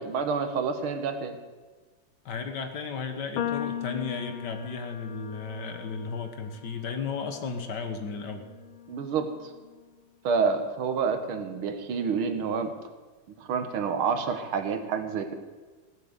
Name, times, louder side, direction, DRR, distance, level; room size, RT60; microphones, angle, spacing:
voice 1, 0.0-1.4 8.9-9.3 10.2-12.7 13.4-15.4, right 5 dB, 75° right, 8 dB, 2.1 m, -28 dB
voice 2, 2.2-8.5, left 5 dB, 60° left, 7 dB, 1.6 m, -34 dB
sound 1, 3.4-9.7, left 10 dB, 75° left, 1.6 m, -38 dB
16.5 x 7.8 x 8.1 m, 1.3 s
omnidirectional pair, 2.3 m